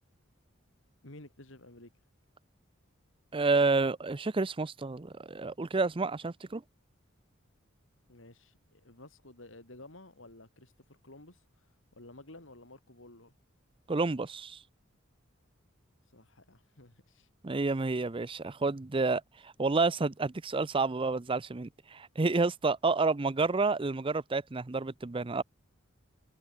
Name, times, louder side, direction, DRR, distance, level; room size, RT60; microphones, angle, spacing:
voice 1, 1.0-1.9 8.1-11.7 11.9-13.4 16.1-17.3, left 2 dB, 70° left, 3.7 m, -53 dB
voice 2, 3.3-6.6 13.9-14.6 17.4-25.4, right 3 dB, 25° right, 0.6 m, -29 dB
head